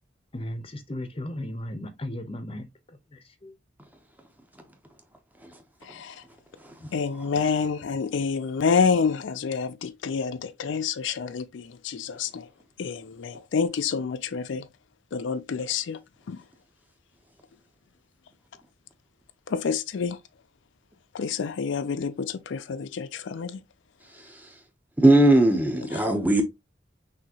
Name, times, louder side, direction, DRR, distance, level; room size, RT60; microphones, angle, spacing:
voice 1, 0.3-2.7 3.1-3.5, left 1 dB, 30° left, 0.7 m, -35 dB
voice 2, 6.9-12.5 12.8-14.7 15.1-16.0 16.3-16.4 19.5-20.2 21.1-23.6 25.9-26.1, left 5 dB, 80° left, 0.4 m, -28 dB
voice 3, 25.0-26.4, right 1 dB, 10° right, 0.8 m, -18 dB
6.0 x 2.8 x 2.8 m
head